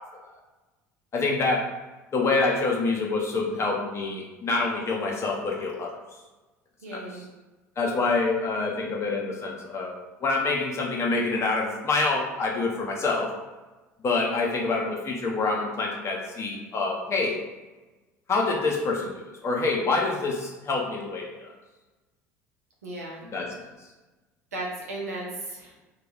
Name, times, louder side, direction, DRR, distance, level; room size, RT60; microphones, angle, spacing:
voice 1, 1.1-1.6 2.1-6.0 7.8-13.3 14.0-17.4 18.3-21.5 23.3-23.7, left 3 dB, 35° left, -1 dB, 0.6 m, -26 dB
voice 2, 6.8-7.2 22.8-23.2 24.5-25.9, right 2 dB, 85° right, -3 dB, 0.7 m, -35 dB
2.2 x 2.1 x 3.3 m, 1.2 s
hypercardioid pair, 70°, 8 cm